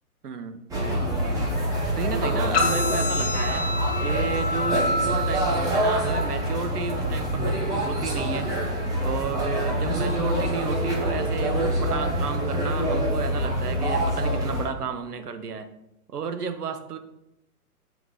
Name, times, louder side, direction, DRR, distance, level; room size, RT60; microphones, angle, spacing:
voice 1, 0.2-0.6 1.9-3.7 4.0-8.5 9.0-15.7 16.1-17.0, right 6 dB, 80° right, 9 dB, 0.9 m, -32 dB
sound 1, 0.7-14.7, equal, 10° right, 0.7 m, -26 dB
sound 2, 2.5-10.5, left 2 dB, 20° left, 1.3 m, -31 dB
7.7 x 4.8 x 3.9 m, 0.87 s
hypercardioid pair, 130°, 46 cm